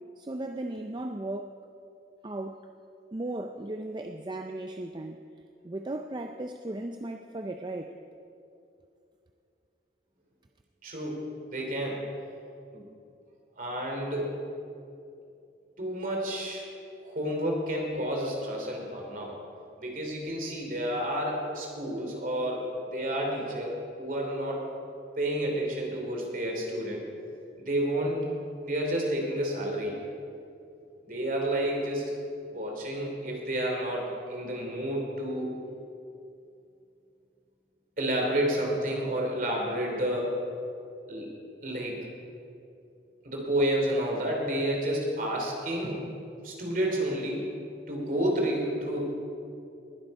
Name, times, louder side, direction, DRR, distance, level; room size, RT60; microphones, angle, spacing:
voice 1, 0.2-1.5 2.2-2.6 3.1-5.2 5.6-7.9, right 1 dB, 25° right, 5 dB, 0.4 m, -36 dB
voice 2, 10.8-11.2 11.5-12.0 12.7-12.8 13.6-14.3 15.8-16.7 17.0-19.4 19.8-24.6 25.2-27.0 27.6-28.2 28.6-30.0 31.1-32.1 32.5-35.6 38.0-40.4 41.1-41.3 41.6-42.0 43.2-46.0 46.4-47.5 47.9-49.0, right 1 dB, 50° right, 0 dB, 2.9 m, -30 dB
20.5 x 8.0 x 5.3 m, 2.6 s
head